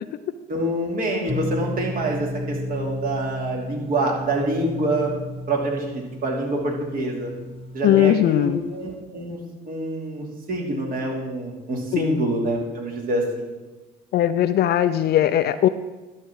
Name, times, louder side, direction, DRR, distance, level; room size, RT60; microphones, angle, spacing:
voice 1, 0.5-5.1 5.5-7.3 7.7-9.4 9.7-13.4, right 1 dB, 50° right, -1 dB, 2.9 m, -26 dB
sound 1, 1.3-8.1, left 1 dB, 30° left, 1.0 m, -33 dB
voice 2, 7.8-8.6 11.9-12.2 14.1-15.7, left 12 dB, 55° left, 11 dB, 0.5 m, -19 dB
11.5 x 4.2 x 7.4 m, 1.1 s
supercardioid pair, 70°, 19 cm